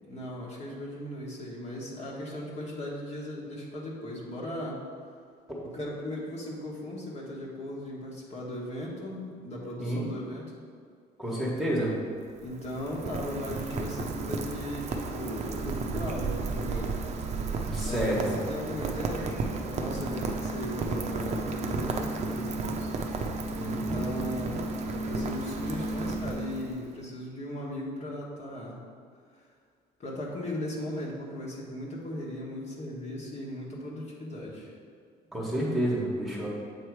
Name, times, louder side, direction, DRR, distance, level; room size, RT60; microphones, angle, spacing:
voice 1, 0.0-4.8 5.6-10.4 12.4-17.0 17.8-22.9 23.6-28.8 30.0-34.7, left 1 dB, 40° left, -5 dB, 1.4 m, -37 dB
voice 2, 11.2-11.9 17.7-18.4 23.5-24.0 35.3-36.5, right 1 dB, ahead, -5 dB, 1.4 m, -29 dB
Rain, 12.1-26.9, right 3 dB, 40° right, 0.6 m, -33 dB
8.1 x 3.1 x 4.7 m, 2.2 s
cardioid pair, 110°, 17 cm